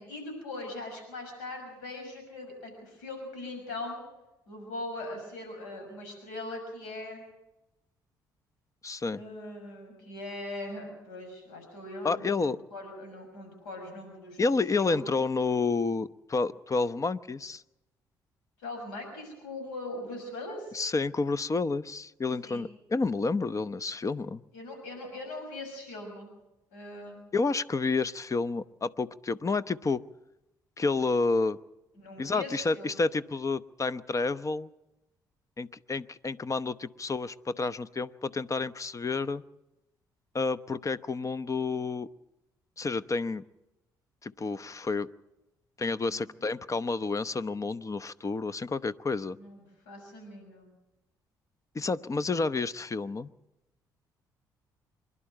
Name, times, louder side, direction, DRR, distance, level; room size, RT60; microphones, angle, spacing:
voice 1, 0.0-4.0 4.5-7.2 9.1-14.4 14.8-15.1 18.6-20.7 22.4-22.7 24.5-26.3 26.7-27.2 32.0-33.0 46.1-46.2 49.4-50.7, left 2 dB, 85° left, 4 dB, 6.2 m, -40 dB
voice 2, 8.8-9.2 12.0-12.6 14.4-17.6 20.7-24.4 27.3-30.0 30.8-31.6 32.2-34.7 35.6-39.4 40.3-42.1 42.8-43.4 44.2-45.1 45.8-49.4 51.7-53.3, left 3 dB, 35° left, 15 dB, 0.8 m, -30 dB
26.0 x 11.5 x 8.9 m, 0.96 s
hypercardioid pair, 50°, 10 cm